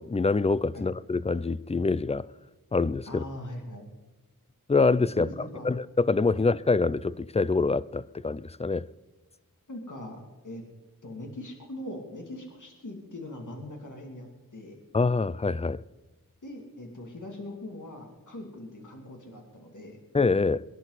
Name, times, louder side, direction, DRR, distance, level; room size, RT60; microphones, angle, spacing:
voice 1, 0.0-2.3 2.7-3.2 4.7-5.3 5.6-8.9 14.9-15.8 20.1-20.6, left 3 dB, 20° left, 0.4 m, -25 dB
voice 2, 3.1-3.9 5.2-5.7 6.3-6.4 9.7-10.6 11.0-14.8 16.4-20.0, left 1 dB, 60° left, 2.8 m, -41 dB
23.5 x 11.0 x 4.1 m
wide cardioid pair, 70°, 35 cm